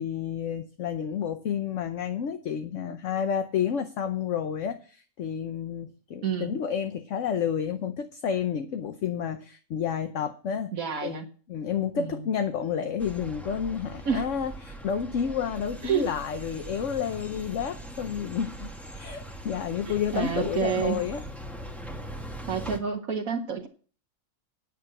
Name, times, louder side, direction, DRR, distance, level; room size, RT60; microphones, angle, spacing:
voice 1, 0.0-10.7 11.0-11.2 11.5-21.2, left 8 dB, 60° left, 8 dB, 1.2 m, -30 dB
voice 2, 6.2-6.5 10.7-11.3 12.0-12.2 14.0-14.3 15.8-16.1 19.9-21.0 22.4-23.7, right 6 dB, 70° right, 2 dB, 1.6 m, -29 dB
sound 1, 13.0-22.8, right 1 dB, ahead, 1.4 m, -41 dB
9.7 x 8.1 x 6.5 m, 0.39 s
omnidirectional pair, 1.5 m